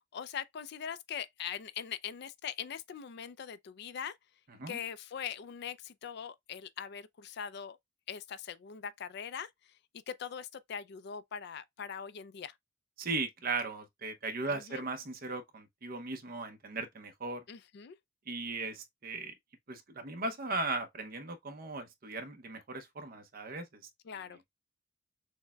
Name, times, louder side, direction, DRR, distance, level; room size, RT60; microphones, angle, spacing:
voice 1, 0.1-4.1 4.7-7.8 8.1-9.5 10.1-12.5 14.5-14.9 17.5-18.0 24.0-24.4, left 8 dB, 55° left, 0.4 m, -41 dB
voice 2, 13.0-17.4 18.3-19.3 19.7-23.8, right 3 dB, 45° right, 0.7 m, -37 dB
6.3 x 2.1 x 2.2 m
head